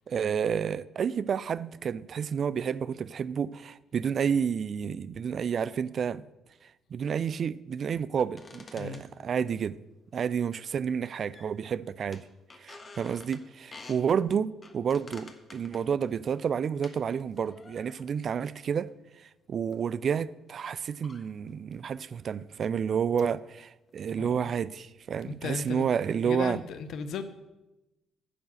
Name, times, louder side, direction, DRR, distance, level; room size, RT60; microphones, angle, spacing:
voice 1, 0.1-6.2 6.9-9.8 10.1-12.3 12.6-18.9 19.5-26.6, right 7 dB, 50° right, 0.4 m, -30 dB
sound 1, 8.2-9.6 10.1-10.7 11.0-11.7 12.1-14.1 14.6-17.0 17.3-18.2 18.9-19.1 19.7-19.9 20.7-20.8 21.0-22.0 22.5-22.7 23.1-23.6 23.9-24.3, left 3 dB, 35° left, 1.3 m, -51 dB
voice 2, 25.2-25.9 26.2-27.2, left 6 dB, 65° left, 0.8 m, -36 dB
9.9 x 4.7 x 7.7 m
hypercardioid pair, 45°, 0 cm